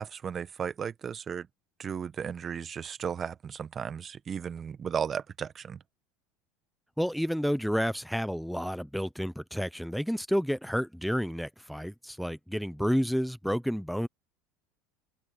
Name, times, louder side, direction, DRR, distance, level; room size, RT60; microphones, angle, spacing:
voice 1, 0.0-1.5 1.8-5.8, right 7 dB, 35° right, 1.2 m, -35 dB
voice 2, 7.0-14.1, equal, ahead, 0.8 m, -30 dB
hypercardioid pair, 90°, 0 cm